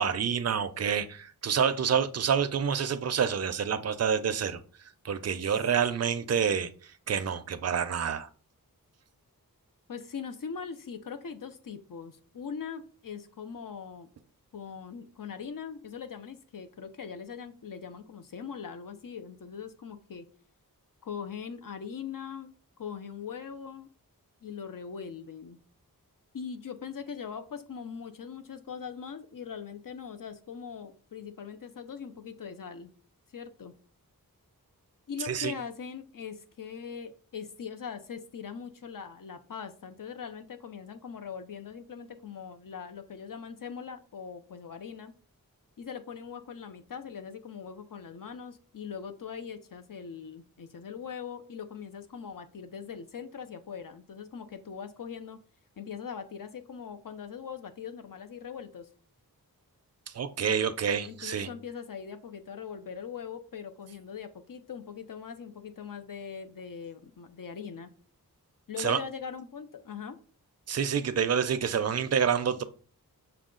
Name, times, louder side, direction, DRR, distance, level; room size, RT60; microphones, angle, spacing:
voice 1, 0.0-4.6 5.0-6.7 7.1-8.3 35.2-35.5 60.1-61.5 68.8-69.0 70.7-72.6, right 7 dB, 45° right, 0.5 m, -28 dB
voice 2, 9.9-14.1 14.5-20.3 21.0-22.5 22.8-23.9 24.4-25.6 26.3-32.9 33.3-33.7 35.1-45.1 45.8-55.4 55.8-58.9 61.1-67.9 68.7-70.2, left 6 dB, 60° left, 0.6 m, -41 dB
6.1 x 2.3 x 3.7 m
wide cardioid pair, 80°, 36 cm